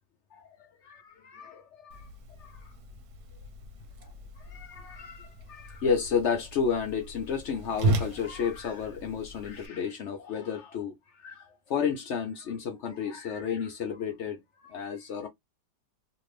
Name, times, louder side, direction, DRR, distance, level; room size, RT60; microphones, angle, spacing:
voice 1, 1.2-2.1 2.4-2.7 4.0-15.3, left 6 dB, 75° left, 0.6 m, -32 dB
Whoosh swoosh swish, 1.9-9.7, right 3 dB, 65° right, 1.1 m, -36 dB
2.8 x 2.6 x 3.1 m
omnidirectional pair, 1.9 m